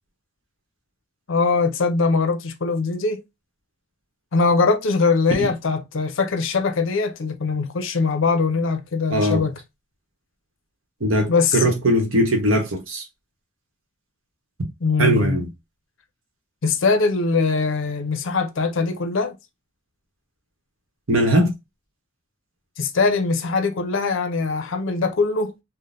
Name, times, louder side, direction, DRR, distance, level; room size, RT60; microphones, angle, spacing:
voice 1, 1.3-3.2 4.3-9.6 11.3-11.7 14.8-15.4 16.6-19.4 22.8-25.5, left 4 dB, 60° left, 0.5 m, -21 dB
voice 2, 9.1-9.4 11.0-13.0 15.0-15.5 21.1-21.5, right 1 dB, 65° right, 1.0 m, -20 dB
3.7 x 2.1 x 2.4 m
head